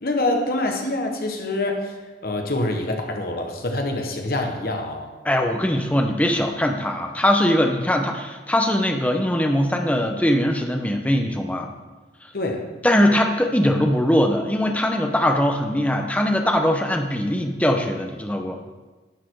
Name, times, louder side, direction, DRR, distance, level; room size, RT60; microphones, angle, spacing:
voice 1, 0.0-1.9 2.2-5.1 12.3-12.6, left 2 dB, 55° left, 3 dB, 1.3 m, -25 dB
voice 2, 5.2-11.7 12.8-18.6, left 1 dB, 10° left, 3 dB, 0.8 m, -21 dB
11.5 x 6.8 x 4.7 m, 1.3 s
head